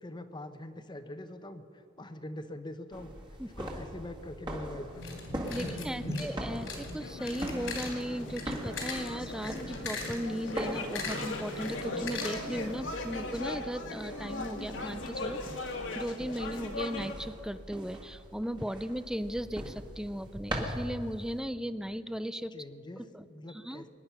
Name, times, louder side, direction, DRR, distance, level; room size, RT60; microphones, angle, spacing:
voice 1, 0.0-3.1 3.4-5.2 5.6-6.7 22.5-23.0 23.3-23.9, left 1 dB, 25° left, 9 dB, 0.9 m, -43 dB
sound 1, 2.9-21.4, right 1 dB, 25° right, 1.9 m, -42 dB
sound 2, 4.9-12.7, left 3 dB, 90° left, 3.6 m, -40 dB
voice 2, 5.5-15.4 15.9-22.5 23.0-23.8, equal, 5° right, 13 dB, 0.4 m, -37 dB
sound 3, 7.0-17.1, left 2 dB, 70° left, 1.7 m, -39 dB
24.0 x 10.5 x 5.7 m, 2.5 s
head